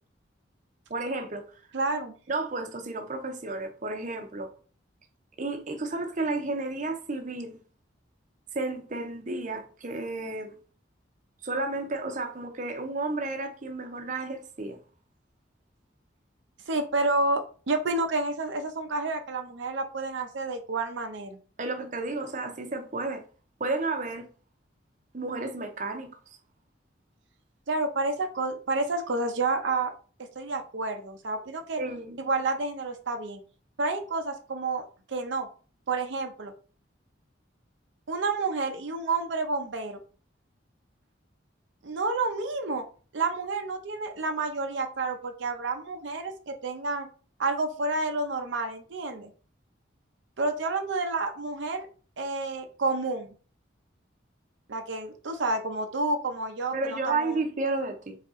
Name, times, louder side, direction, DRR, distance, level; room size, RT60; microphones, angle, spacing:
voice 1, 0.9-1.4 2.3-4.5 5.4-7.6 8.5-10.5 11.4-14.8 21.6-23.2 23.6-24.2 25.1-26.1 31.8-32.2 56.7-58.2, right 3 dB, 40° right, 0.6 m, -32 dB
voice 2, 1.7-2.1 16.7-21.4 27.7-29.9 30.4-31.8 32.2-33.4 33.8-35.5 35.9-36.5 38.1-40.0 41.8-42.8 43.1-47.1 47.4-49.3 50.4-51.9 52.2-53.3 54.7-57.4, right 3 dB, 75° right, 0.6 m, -29 dB
4.1 x 3.4 x 3.6 m
head